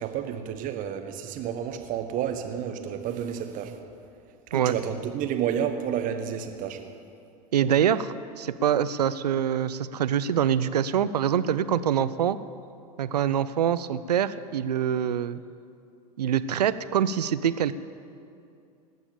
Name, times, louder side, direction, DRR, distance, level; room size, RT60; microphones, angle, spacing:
voice 1, 0.0-3.7 4.5-6.8, right 9 dB, 40° right, 6 dB, 1.3 m, -30 dB
voice 2, 7.5-12.4 13.0-15.4 16.2-17.7, right 9 dB, 75° right, 14 dB, 0.5 m, -25 dB
19.0 x 7.1 x 7.0 m, 2.5 s
figure-of-eight pair, 85°, 21 cm